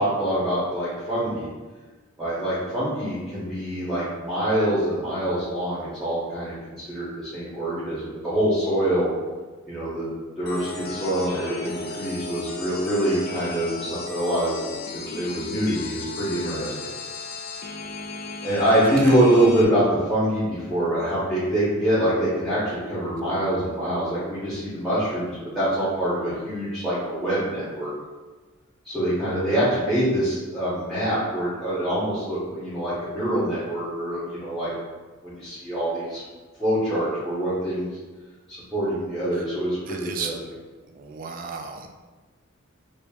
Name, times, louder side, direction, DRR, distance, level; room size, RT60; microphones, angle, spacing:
voice 1, 0.0-1.5 2.2-9.1 9.7-10.1 10.4-14.6 14.9-16.9 18.4-27.9 28.8-34.7 35.2-36.2 36.6-37.9 38.5-40.3, right 1 dB, ahead, -12 dB, 0.9 m, -25 dB
sound 1, 10.5-19.6, left 3 dB, 45° left, 0.4 m, -35 dB
voice 2, 18.8-19.2 39.3-39.4 39.9-40.5 40.9-41.9, right 5 dB, 40° right, 5 dB, 0.3 m, -34 dB
5.1 x 2.5 x 2.3 m, 1.3 s
head